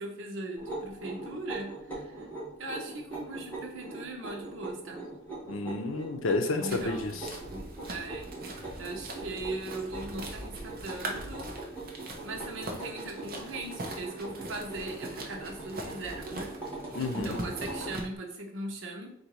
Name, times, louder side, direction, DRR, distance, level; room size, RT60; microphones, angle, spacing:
voice 1, 0.0-2.3 2.6-5.1 6.5-8.3 8.8-11.5 12.2-16.5 17.1-19.1, right 2 dB, 80° right, 1 dB, 0.9 m, -39 dB
sound 1, 0.6-18.0, right 2 dB, 10° left, 1.3 m, -42 dB
voice 2, 5.5-7.3 16.9-17.4, left 3 dB, 90° left, 6 dB, 0.6 m, -30 dB
sound 2, 6.7-18.0, right 1 dB, 50° right, 0.8 m, -42 dB
4.0 x 2.6 x 4.5 m, 0.72 s
head